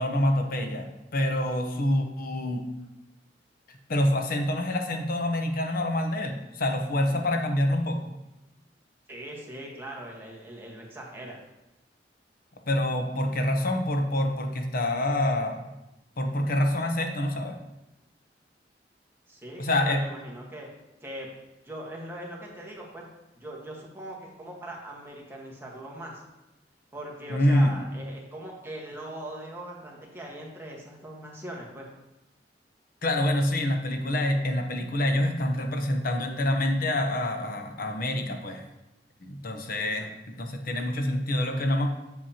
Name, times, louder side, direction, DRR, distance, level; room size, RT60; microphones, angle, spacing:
voice 1, 0.0-2.7 3.7-8.1 12.7-15.6 16.2-17.6 19.6-20.0 27.3-27.8 33.0-38.6 39.2-41.9, left 1 dB, 55° left, 5 dB, 0.9 m, -26 dB
voice 2, 9.1-11.4 19.3-20.7 21.0-21.3 21.6-23.1 23.3-26.2 26.9-31.9 39.7-40.1, right 1 dB, 15° right, -2 dB, 1.4 m, -40 dB
7.6 x 7.0 x 2.9 m, 0.93 s
head